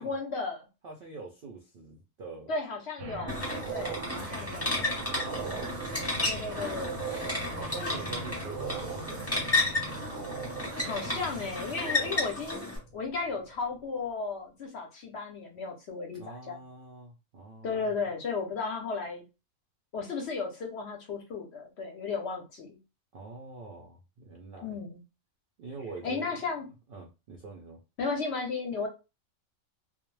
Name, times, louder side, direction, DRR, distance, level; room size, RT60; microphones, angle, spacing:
voice 1, 0.0-0.7 2.5-4.8 6.3-7.2 10.8-12.7 12.9-16.6 17.6-19.2 19.9-22.8 24.6-25.0 26.0-26.7 28.0-28.9, left 4 dB, 60° left, 2 dB, 0.7 m, -34 dB
voice 2, 0.8-2.5 4.7-5.8 7.5-9.4 16.1-17.9 23.1-24.8 25.6-26.4 26.9-27.8, right 3 dB, 70° right, 0 dB, 0.5 m, -45 dB
sound 1, 3.0-12.2, right 5 dB, 90° right, 1.0 m, -40 dB
sound 2, 3.3-12.8, left 2 dB, 10° left, 0.9 m, -33 dB
sound 3, 5.4-14.1, equal, 30° left, 0.4 m, -47 dB
2.3 x 2.0 x 3.0 m, 0.28 s
omnidirectional pair, 1.5 m